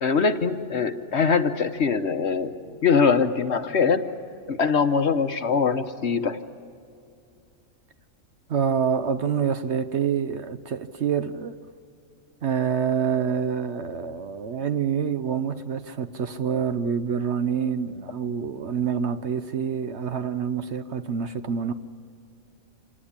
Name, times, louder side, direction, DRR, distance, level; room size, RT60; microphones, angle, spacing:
voice 1, 0.0-2.5 2.8-4.1 4.5-6.4, left 5 dB, 55° left, 1.2 m, -22 dB
voice 2, 8.5-11.6 12.4-21.7, right 7 dB, 55° right, 1.0 m, -27 dB
27.0 x 18.5 x 8.7 m
omnidirectional pair, 1.5 m